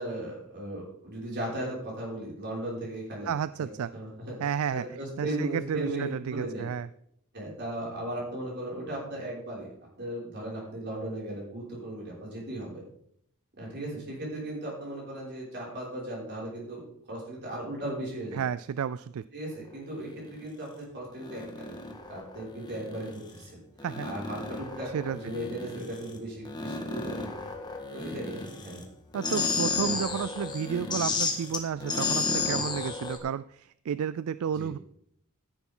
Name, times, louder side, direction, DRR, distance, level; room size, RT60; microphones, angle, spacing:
voice 1, 0.0-3.3 3.6-4.3 4.7-6.7 7.3-9.7 10.0-12.8 13.6-16.8 17.1-18.4 19.3-21.8 22.1-23.6 24.0-27.2 27.9-28.8 34.5-34.7, right 1 dB, 50° right, -4 dB, 5.8 m, -37 dB
voice 2, 3.2-3.9 4.4-4.8 5.2-6.9 18.3-19.2 23.8-24.1 24.9-25.2 29.1-34.8, right 8 dB, 70° right, 16 dB, 0.3 m, -31 dB
sound 1, 20.0-20.4 21.2-23.5 23.8-26.2 26.5-28.8 29.1-33.2, left 4 dB, 20° left, 1.7 m, -33 dB
13.5 x 10.5 x 3.8 m, 0.69 s
head